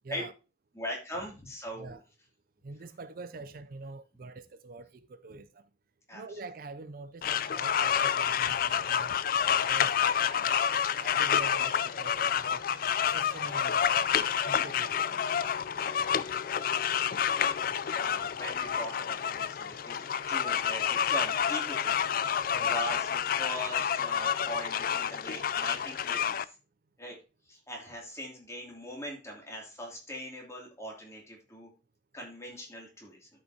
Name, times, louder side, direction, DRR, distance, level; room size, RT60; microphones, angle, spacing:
voice 1, 0.7-2.0 5.3-5.4 6.1-6.4 15.8-15.9 17.7-22.2 22.6-26.5 27.0-27.2 27.5-31.7 32.1-33.3, equal, 15° left, 2.8 m, -41 dB
voice 2, 2.6-5.6 6.1-9.2 9.7-12.7 13.1-15.2 22.5-22.7 27.1-27.2, right 3 dB, 50° right, 0.4 m, -45 dB
sound 1, 7.2-26.4, left 8 dB, 50° left, 0.4 m, -29 dB
12.5 x 5.5 x 2.8 m
head